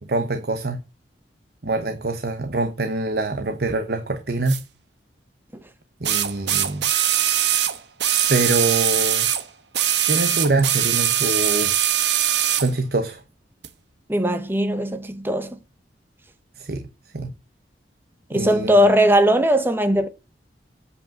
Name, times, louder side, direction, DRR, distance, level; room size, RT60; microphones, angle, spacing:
voice 1, 0.0-0.8 1.6-4.6 6.0-6.9 8.3-9.3 10.1-11.7 12.6-13.2 16.6-16.9 17.1-17.3 18.3-18.8, right 2 dB, 60° right, 0.9 m, -24 dB
sound 1, 4.5-4.6 6.0-9.4 9.7-12.7 13.6-13.7, right 11 dB, 80° right, 1.1 m, -21 dB
voice 2, 14.1-15.6 18.3-20.1, equal, 10° right, 1.0 m, -19 dB
8.3 x 5.2 x 7.0 m
head